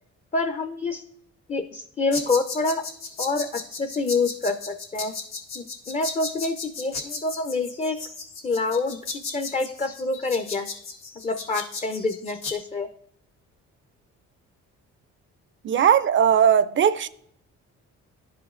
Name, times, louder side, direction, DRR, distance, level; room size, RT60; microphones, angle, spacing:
voice 1, 0.3-1.0 1.5-2.8 3.2-5.1 5.6-8.0 8.4-9.0 9.3-10.7 11.2-12.9, left 3 dB, 25° left, 0.5 m, -27 dB
sound 1, 2.1-12.5, left 4 dB, 90° left, 2.0 m, -35 dB
voice 2, 15.6-17.1, right 8 dB, 40° right, 0.4 m, -18 dB
12.5 x 5.1 x 2.4 m
cardioid pair, 90°, 30 cm